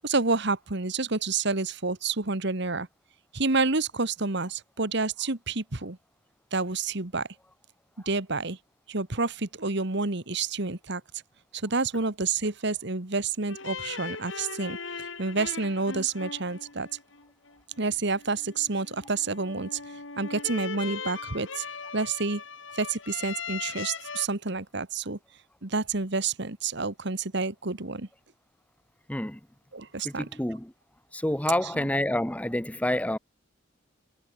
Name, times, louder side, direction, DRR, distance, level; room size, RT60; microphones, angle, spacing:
voice 1, 0.0-2.9 3.3-6.0 6.5-7.3 8.0-8.6 8.9-11.0 11.5-16.9 17.8-19.8 20.2-21.7 21.9-22.4 22.7-25.2 25.6-28.1 29.7-30.3, right 3 dB, 60° right, 1.8 m, -29 dB
sound 1, 13.5-24.3, left 5 dB, 70° left, 4.0 m, -39 dB
voice 2, 29.1-29.4 30.0-30.7 31.1-33.2, left 1 dB, 5° left, 0.9 m, -28 dB
head